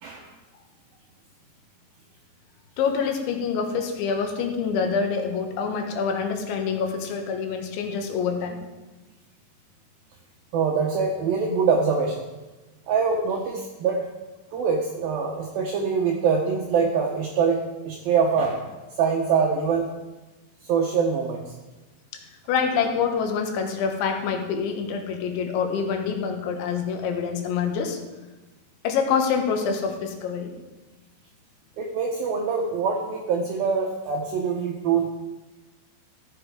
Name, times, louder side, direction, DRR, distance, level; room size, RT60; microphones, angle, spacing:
voice 1, 2.8-8.6 22.5-28.0 28.8-30.5, left 6 dB, 85° left, 4 dB, 3.6 m, -26 dB
voice 2, 10.5-12.3 12.9-14.0 14.5-18.7 19.0-19.9 20.6-21.4 31.8-35.1, right 5 dB, 85° right, 1 dB, 2.1 m, -24 dB
14.0 x 7.2 x 4.7 m, 1.1 s
omnidirectional pair, 5.3 m